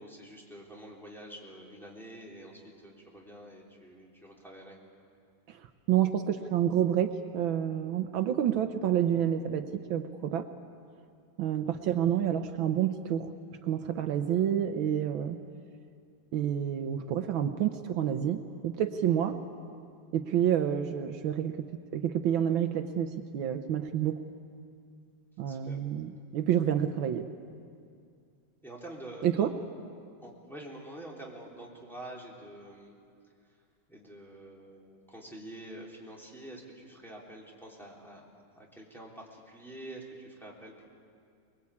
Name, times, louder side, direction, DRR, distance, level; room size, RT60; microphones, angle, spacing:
voice 1, 0.0-4.8 25.5-25.8 28.6-29.5 30.2-32.9 33.9-38.2 38.6-40.9, right 1 dB, ahead, -4 dB, 3.5 m, -47 dB
voice 2, 5.9-10.5 11.4-13.3 13.6-15.4 16.3-19.4 20.1-21.5 21.9-24.2 25.4-27.2 29.2-29.5, right 10 dB, 75° right, 8 dB, 1.6 m, -28 dB
24.5 x 21.0 x 8.5 m, 2.3 s
omnidirectional pair, 2.2 m